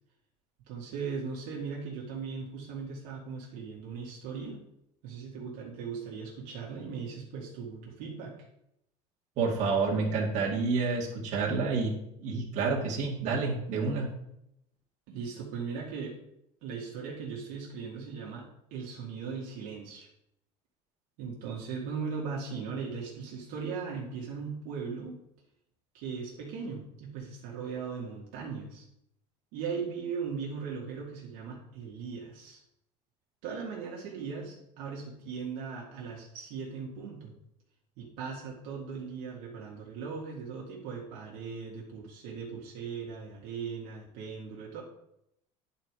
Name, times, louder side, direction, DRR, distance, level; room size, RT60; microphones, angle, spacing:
voice 1, 0.7-4.6 5.0-8.3 15.1-16.2 16.6-20.1 21.2-25.2 25.9-28.8 29.5-32.6 33.4-37.3 38.0-44.8, right 5 dB, 75° right, -3 dB, 2.0 m, -38 dB
voice 2, 9.4-11.9 12.2-14.1, right 4 dB, 55° right, -3 dB, 2.2 m, -29 dB
10.0 x 4.3 x 4.8 m, 0.80 s
cardioid pair, 140°, 15 cm